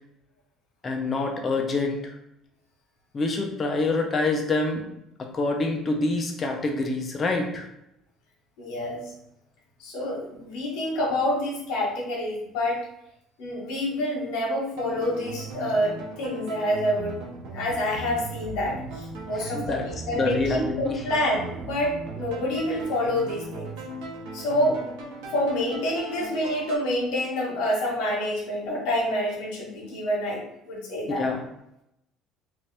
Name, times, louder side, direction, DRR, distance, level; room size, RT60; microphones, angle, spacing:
voice 1, 0.8-2.1 3.1-4.8 5.2-7.7 19.3-19.9 20.1-21.0 31.2-31.4, left 3 dB, 25° left, 2 dB, 0.6 m, -26 dB
voice 2, 8.6-9.1 9.8-12.8 13.4-17.2 17.5-23.7 24.3-24.8 25.3-30.4 30.6-31.3, left 1 dB, 80° left, -4 dB, 1.2 m, -27 dB
sound 1, 14.7-26.8, right 3 dB, 85° right, 0.8 m, -38 dB
2.9 x 2.5 x 3.2 m, 0.82 s
cardioid pair, 135°, 0 cm